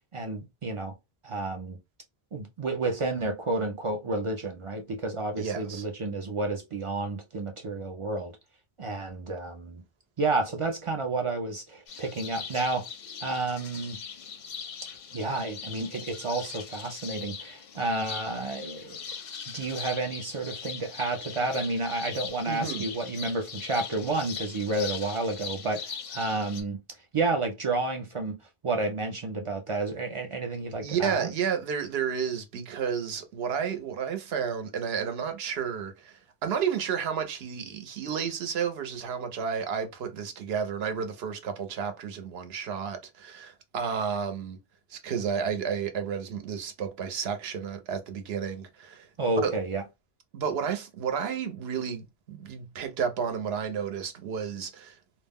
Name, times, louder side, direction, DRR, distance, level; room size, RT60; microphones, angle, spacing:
voice 1, 0.1-0.9 1.2-1.8 2.3-8.3 8.8-9.8 10.2-12.8 13.2-14.0 15.1-19.0 19.5-26.8 27.1-28.4 28.6-31.3 49.2-49.8, right 3 dB, 55° right, 0.3 m, -30 dB
voice 2, 5.4-5.8 22.5-22.8 30.8-44.6 44.9-49.1 49.4-49.5 50.3-55.0, right 7 dB, 75° right, 0.8 m, -31 dB
sound 1, 11.9-26.6, left 6 dB, 55° left, 0.6 m, -40 dB
2.3 x 2.1 x 3.4 m
omnidirectional pair, 1.1 m